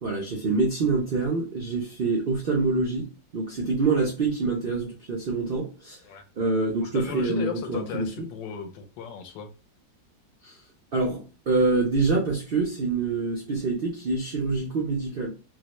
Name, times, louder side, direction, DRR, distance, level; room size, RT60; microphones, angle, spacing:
voice 1, 0.0-6.0 6.4-8.1 10.4-10.6 10.9-15.3, right 3 dB, 65° right, 0.5 m, -26 dB
voice 2, 6.9-9.5, left 7 dB, 80° left, 1.3 m, -35 dB
3.9 x 2.1 x 3.0 m
omnidirectional pair, 2.0 m